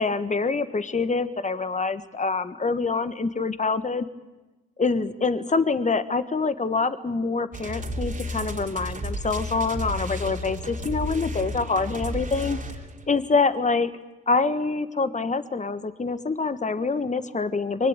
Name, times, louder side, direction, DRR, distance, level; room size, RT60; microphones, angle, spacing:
voice 1, 0.0-4.0 4.8-12.6 13.1-13.9 14.3-17.9, left 4 dB, 20° left, 12 dB, 1.4 m, -25 dB
sound 1, 7.5-13.1, equal, 20° right, 3.5 m, -32 dB
23.5 x 16.5 x 9.0 m, 1.1 s
hypercardioid pair, 60°, 39 cm